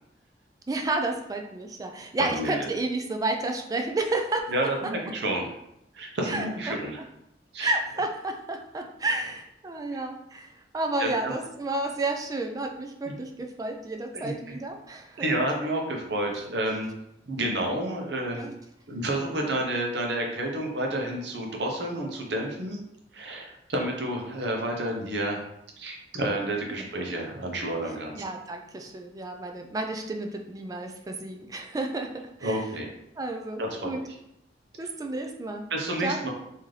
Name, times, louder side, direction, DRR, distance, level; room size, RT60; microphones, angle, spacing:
voice 1, 0.7-4.4 6.3-6.8 7.6-15.3 18.3-18.5 19.4-19.6 26.7-26.8 28.2-32.6 33.2-34.0 34.8-35.7 36.0-36.3, right 2 dB, 20° right, 4 dB, 0.3 m, -31 dB
voice 2, 2.2-2.7 4.5-5.5 5.9-7.0 7.5-7.7 11.0-11.3 13.1-13.2 14.1-14.6 15.2-16.9 17.3-18.4 18.9-22.8 23.1-25.4 25.8-28.2 32.4-32.9 33.6-33.9 35.7-36.3, right 1 dB, 75° right, 1 dB, 0.8 m, -30 dB
3.7 x 2.7 x 3.2 m, 0.83 s
head